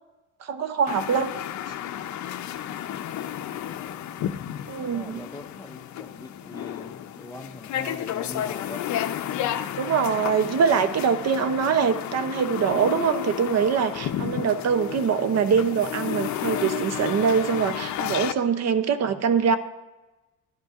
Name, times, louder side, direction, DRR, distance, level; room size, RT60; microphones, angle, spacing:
voice 1, 0.4-1.3 4.7-5.2 9.8-19.6, right 6 dB, 50° right, 11 dB, 0.6 m, -23 dB
sound 1, 0.9-18.3, left 11 dB, 60° left, 0.5 m, -32 dB
voice 2, 4.9-8.9, left 2 dB, 10° left, 5 dB, 0.4 m, -42 dB
11.0 x 10.5 x 2.4 m, 1.1 s
cardioid pair, 110°, 34 cm